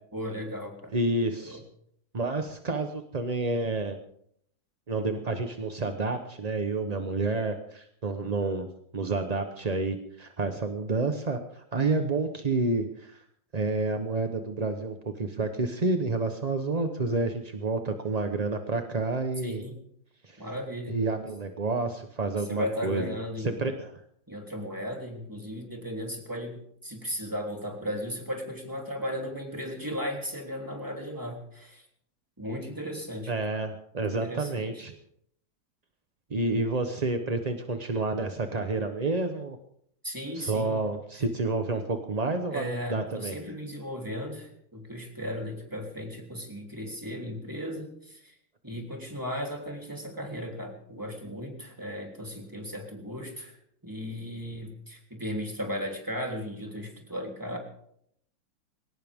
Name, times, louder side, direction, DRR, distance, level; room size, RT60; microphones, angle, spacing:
voice 1, 0.1-0.9 1.3-1.6 19.4-19.8 20.4-21.0 22.4-23.6 24.3-31.9 32.4-33.3 33.9-34.9 40.0-40.8 42.5-48.4 48.6-57.6, equal, 10° right, 1 dB, 3.3 m, -36 dB
voice 2, 0.9-1.6 2.1-4.0 4.9-8.7 8.9-13.2 13.5-19.6 20.2-20.4 20.9-23.2 23.4-23.9 33.3-34.9 36.3-39.6 40.4-43.4, right 3 dB, 35° right, 6 dB, 0.6 m, -29 dB
21.5 x 18.0 x 3.6 m, 0.69 s
omnidirectional pair, 2.1 m